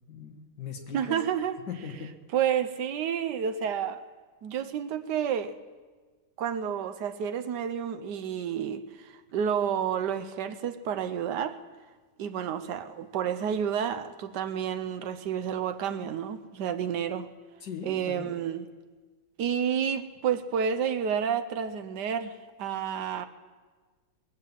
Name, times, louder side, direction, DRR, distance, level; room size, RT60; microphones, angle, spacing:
voice 1, 0.1-1.2 1.7-2.1 17.6-18.3, left 6 dB, 60° left, 3 dB, 2.1 m, -39 dB
voice 2, 0.9-1.6 2.3-4.0 4.4-5.5 6.4-11.6 12.2-17.3 17.8-18.7 19.4-23.3, right 8 dB, 70° right, 9 dB, 1.2 m, -30 dB
21.0 x 7.7 x 7.3 m, 1.4 s
omnidirectional pair, 2.2 m